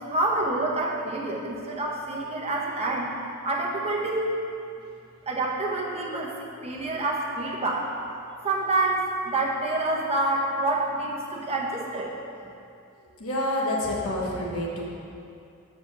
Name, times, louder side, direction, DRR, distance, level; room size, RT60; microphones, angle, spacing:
voice 1, 0.0-3.1 3.4-4.3 5.3-7.9 8.4-12.1, right 2 dB, 30° right, -2 dB, 1.0 m, -27 dB
voice 2, 13.2-15.0, left 1 dB, 70° left, -3 dB, 1.2 m, -28 dB
6.1 x 5.0 x 6.7 m, 2.6 s
head